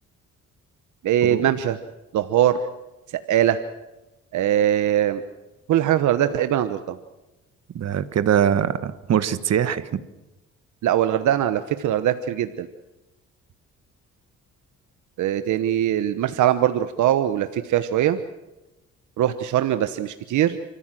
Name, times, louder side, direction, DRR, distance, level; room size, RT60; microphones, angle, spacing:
voice 1, 1.0-1.8 2.1-2.6 3.3-3.6 4.3-5.2 5.7-7.0 10.8-12.7 15.2-18.2 19.2-20.6, right 11 dB, 75° right, 10 dB, 1.1 m, -21 dB
voice 2, 7.7-10.0, right 9 dB, 55° right, 13 dB, 1.5 m, -22 dB
30.0 x 14.5 x 7.7 m, 1.0 s
cardioid pair, 90°, 30 cm